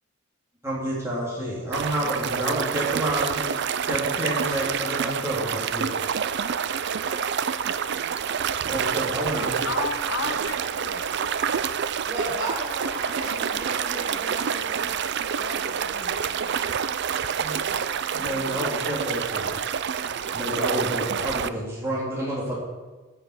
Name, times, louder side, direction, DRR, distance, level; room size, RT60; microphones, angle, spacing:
voice 1, 0.6-6.1 8.6-9.5 17.4-17.6 18.1-19.8 20.3-22.6, right 1 dB, 15° right, -6 dB, 2.7 m, -29 dB
sound 1, 1.7-21.5, right 7 dB, 55° right, 0.5 m, -27 dB
voice 2, 7.0-8.0 9.3-11.0 15.4-16.2 18.2-18.6, left 4 dB, 65° left, 6 dB, 1.2 m, -35 dB
voice 3, 8.9-10.1 12.1-14.9, right 1 dB, 30° right, -7 dB, 3.4 m, -36 dB
13.0 x 5.8 x 7.8 m, 1.3 s
head